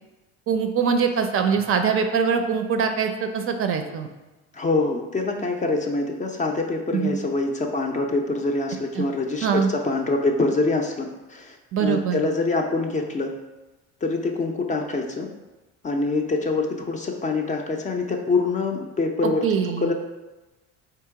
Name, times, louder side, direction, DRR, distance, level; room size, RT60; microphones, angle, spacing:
voice 1, 0.5-4.1 6.9-7.2 9.0-9.1 9.4-9.7 11.7-12.2 19.4-19.9, right 6 dB, 45° right, 6 dB, 0.5 m, -23 dB
voice 2, 4.5-13.3 14.0-15.3 15.8-19.4 19.8-19.9, left 3 dB, 25° left, 2 dB, 0.4 m, -25 dB
3.7 x 2.9 x 4.6 m, 1.1 s
cardioid pair, 110°, 32 cm